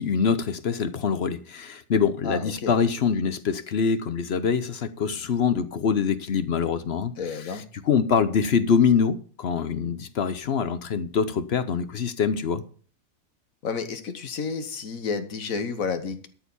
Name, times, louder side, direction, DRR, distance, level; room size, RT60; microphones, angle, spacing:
voice 1, 0.0-7.1 7.9-12.6, left 6 dB, 55° left, 0.9 m, -24 dB
voice 2, 2.2-2.7 7.2-7.6 13.6-16.3, left 5 dB, 85° left, 1.6 m, -31 dB
12.5 x 4.9 x 8.2 m
omnidirectional pair, 1.4 m